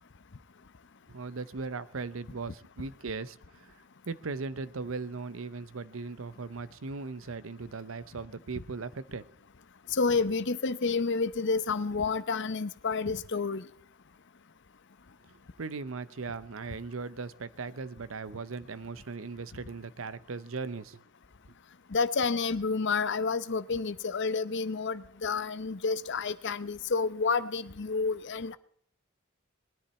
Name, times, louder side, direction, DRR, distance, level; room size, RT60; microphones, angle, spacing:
voice 1, 1.1-9.2 15.6-21.0, right 4 dB, 75° right, 17 dB, 0.7 m, -38 dB
voice 2, 9.9-13.6 21.9-28.6, left 4 dB, 60° left, 14 dB, 0.8 m, -29 dB
20.5 x 10.0 x 4.3 m, 0.63 s
head